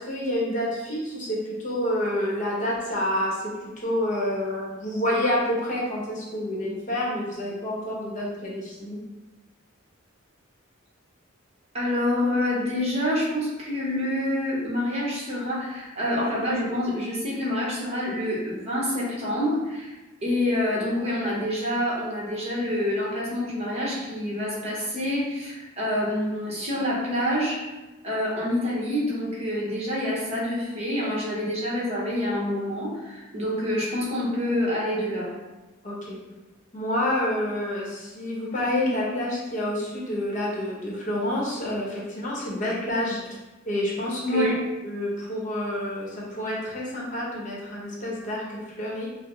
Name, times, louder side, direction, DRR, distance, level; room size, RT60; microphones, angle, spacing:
voice 1, 0.0-9.0 35.8-36.2 36.7-43.2 43.7-44.5 44.8-49.1, left 1 dB, 40° left, -4 dB, 0.8 m, -28 dB
voice 2, 11.7-19.9 20.2-27.6 28.0-35.3 44.2-44.5, left 1 dB, 30° right, -6 dB, 1.0 m, -27 dB
5.6 x 2.0 x 3.0 m, 1.1 s
head